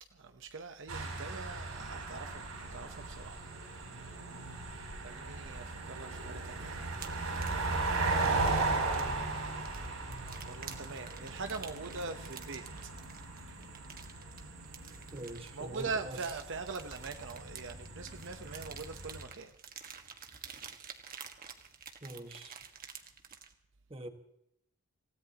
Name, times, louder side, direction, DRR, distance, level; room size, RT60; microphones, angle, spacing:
voice 1, 0.0-3.5 5.0-6.8 9.6-12.9 13.5-13.6 15.5-19.5, right 4 dB, 60° right, 0.9 m, -43 dB
sound 1, 0.9-19.2, right 3 dB, 80° right, 7.7 m, -37 dB
sound 2, 6.9-23.5, right 7 dB, 40° right, 1.6 m, -50 dB
voice 2, 15.1-16.2 22.0-22.5 23.9-24.1, right 1 dB, 25° right, 1.6 m, -44 dB
28.0 x 17.0 x 3.0 m
head